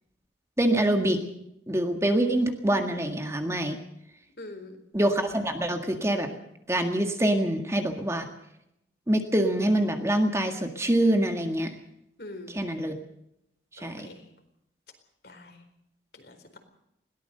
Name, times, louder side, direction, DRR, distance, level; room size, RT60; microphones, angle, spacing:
voice 1, 0.6-1.2 1.7-3.8 4.9-6.3 6.7-8.3 9.1-11.7 12.5-12.9 13.7-14.1, right 1 dB, 15° right, 4 dB, 1.8 m, -25 dB
voice 2, 4.4-4.8 12.2-12.6 13.8-14.3 15.2-15.6 16.1-16.6, left 2 dB, 60° left, 6 dB, 4.3 m, -44 dB
21.0 x 18.0 x 6.7 m, 0.80 s
head